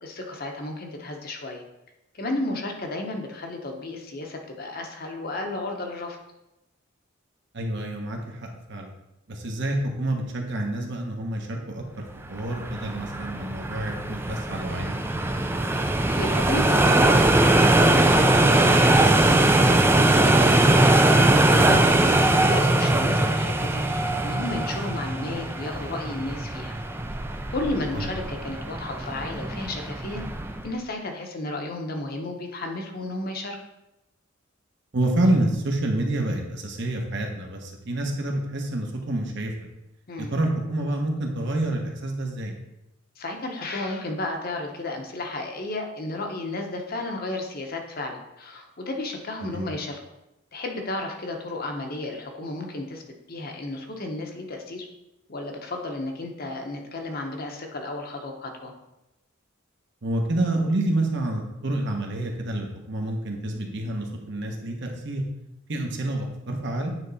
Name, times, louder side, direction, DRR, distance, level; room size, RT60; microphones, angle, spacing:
voice 1, 0.0-1.6 2.1-6.2 15.7-20.9 21.4-26.8 27.5-30.2 30.6-33.6 40.1-40.3 43.2-50.0 50.5-53.0 53.3-54.9 55.3-58.7, left 2 dB, 45° left, 2 dB, 0.9 m, -33 dB
voice 2, 7.5-8.9 9.3-15.1 22.2-22.3 27.9-28.1 34.9-39.5 40.2-42.5 49.4-49.7 60.0-65.2 65.7-66.9, right 1 dB, 60° right, 1 dB, 1.1 m, -28 dB
sound 1, 12.4-30.7, right 2 dB, 10° right, 0.4 m, -21 dB
9.0 x 3.4 x 4.1 m, 0.92 s
head